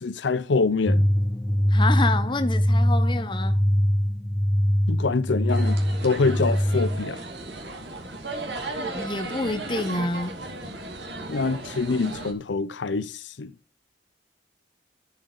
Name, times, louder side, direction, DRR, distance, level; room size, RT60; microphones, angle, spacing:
voice 1, 0.0-1.1 4.9-7.2 11.3-13.5, left 4 dB, 75° left, 0.6 m, -25 dB
sound 1, 0.9-7.0, equal, 10° left, 0.5 m, -22 dB
voice 2, 1.7-3.6 8.8-10.4, left 2 dB, 25° left, 1.0 m, -28 dB
sound 2, 5.5-12.3, right 2 dB, 65° right, 2.5 m, -35 dB
12.0 x 5.8 x 3.9 m
head